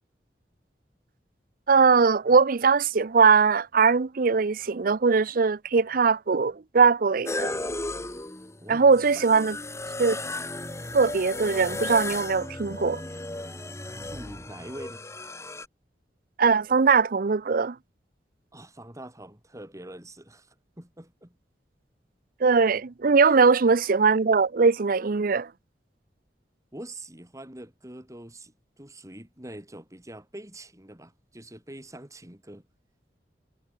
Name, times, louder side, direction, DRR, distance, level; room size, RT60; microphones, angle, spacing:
voice 1, 1.7-7.5 8.7-9.6 10.0-10.2 10.9-13.0 16.4-17.8 22.4-25.5, right 5 dB, 50° right, 0.6 m, -21 dB
sound 1, 7.2-15.7, left 2 dB, 15° left, 2.8 m, -35 dB
voice 2, 14.1-15.0 18.5-21.3 26.7-32.6, right 1 dB, 20° right, 3.4 m, -44 dB
head